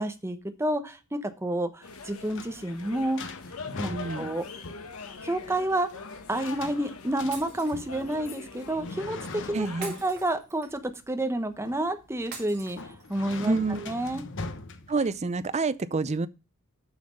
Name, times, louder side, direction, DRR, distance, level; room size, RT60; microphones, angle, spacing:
voice 1, 0.0-3.3 3.8-3.9 4.2-4.4 5.2-5.9 6.3-13.6 13.9-14.2, right 1 dB, 10° right, 1.0 m, -30 dB
sound 1, 1.8-10.0, left 4 dB, 85° left, 1.3 m, -43 dB
sound 2, 1.9-15.5, left 3 dB, 60° left, 1.1 m, -43 dB
voice 2, 3.8-4.3 9.5-10.0 13.4-13.9 14.9-16.3, right 3 dB, 30° right, 0.5 m, -28 dB
Shatter, 7.3-8.2 9.8-10.9 12.3-13.3, right 6 dB, 50° right, 2.7 m, -44 dB
7.1 x 5.9 x 6.4 m
head